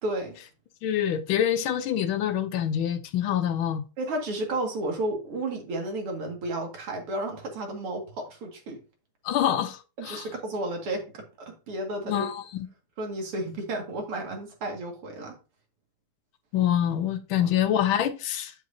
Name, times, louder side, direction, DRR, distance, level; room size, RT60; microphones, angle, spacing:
voice 1, 0.0-0.4 4.0-8.8 10.0-12.3 13.0-15.4 17.4-17.5, right 1 dB, 85° right, 2.9 m, -32 dB
voice 2, 0.8-3.8 9.2-10.3 12.1-12.7 16.5-18.5, left 10 dB, 75° left, 1.4 m, -26 dB
7.8 x 7.7 x 2.7 m
omnidirectional pair, 2.4 m